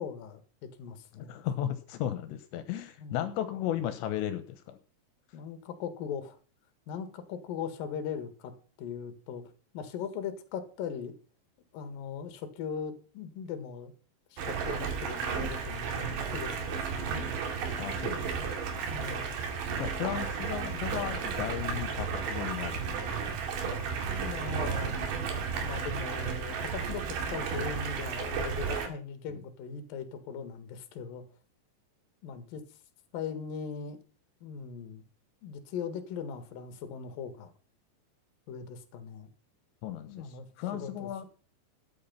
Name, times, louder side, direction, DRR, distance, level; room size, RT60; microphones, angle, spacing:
voice 1, 0.0-1.4 3.0-3.3 5.3-6.4 6.9-8.5 8.8-11.1 11.7-13.9 14.3-16.0 16.3-17.4 18.9-19.4 24.0-24.9 25.6-31.2 32.2-32.6 33.1-34.0 34.4-35.0 35.4-37.5 38.5-39.3 40.1-41.3, left 7 dB, 60° left, 9 dB, 3.1 m, -39 dB
voice 2, 1.2-4.8 17.8-18.4 19.8-23.4 39.8-41.3, left 11 dB, 80° left, 10 dB, 3.2 m, -35 dB
Stream, 14.4-28.9, right 6 dB, 70° right, 4.4 m, -33 dB
13.0 x 9.6 x 5.7 m, 0.37 s
omnidirectional pair, 5.2 m